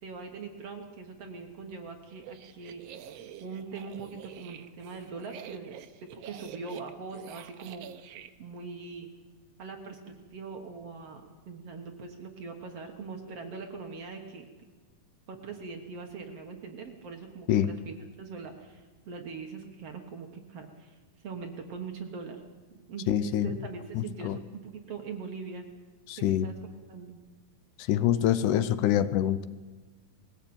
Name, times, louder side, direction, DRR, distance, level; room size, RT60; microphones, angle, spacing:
voice 1, 0.0-3.1 3.4-7.9 8.4-9.1 9.6-14.5 15.3-21.0 21.2-22.4 22.8-25.7 26.2-26.5 26.9-27.2, right 5 dB, 55° right, 4 dB, 2.2 m, -42 dB
sound 1, 2.1-8.3, right 10 dB, 70° right, 1.6 m, -47 dB
voice 2, 23.1-23.5 24.0-24.4 26.1-26.5 27.9-29.4, left 11 dB, 80° left, 14 dB, 2.2 m, -25 dB
20.5 x 16.0 x 8.7 m, 1.3 s
omnidirectional pair, 3.8 m